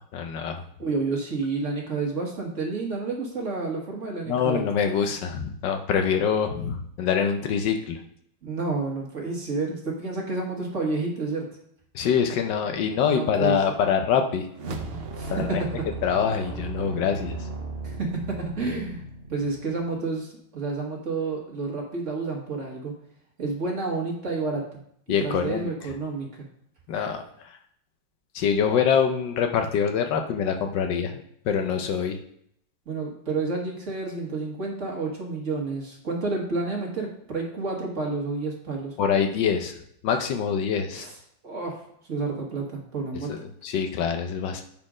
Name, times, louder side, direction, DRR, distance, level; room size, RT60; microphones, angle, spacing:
voice 1, 0.0-0.6 4.3-8.0 11.9-14.5 15.3-15.6 16.0-17.4 25.1-25.7 26.9-27.2 28.3-32.2 39.0-39.7 40.0-41.1 43.3-44.6, left 7 dB, 75° left, 5 dB, 1.3 m, -25 dB
voice 2, 0.8-4.7 8.4-11.5 13.1-13.8 15.2-15.9 17.8-19.0 19.3-22.9 23.4-24.8 25.2-26.5 32.9-39.0 40.9-41.2 41.4-41.8 42.1-43.3, right 3 dB, 45° right, -1 dB, 1.6 m, -30 dB
sound 1, 14.5-19.9, right 2 dB, 85° right, 0.5 m, -35 dB
7.2 x 4.3 x 4.9 m, 0.70 s
omnidirectional pair, 2.0 m